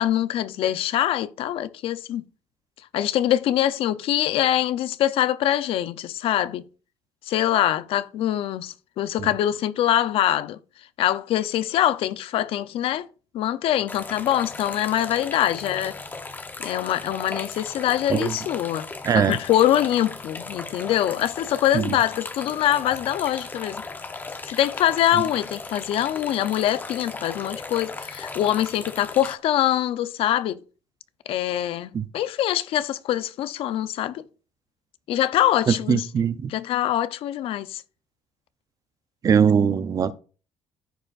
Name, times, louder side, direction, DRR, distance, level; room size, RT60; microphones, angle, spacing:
voice 1, 0.0-2.2 2.9-6.6 7.2-10.6 11.0-13.1 13.3-16.0 16.6-18.9 19.1-23.8 24.5-30.6 31.3-34.2 35.1-36.1 36.5-37.8, left 12 dB, 65° left, 0.6 m, -24 dB
sound 1, 13.9-29.4, left 3 dB, 20° left, 0.8 m, -37 dB
voice 2, 19.0-19.4 21.7-22.0 31.9-32.1 35.7-36.5 39.2-40.1, right 7 dB, 35° right, 0.6 m, -21 dB
15.0 x 5.0 x 2.5 m
cardioid pair, 135°, 10 cm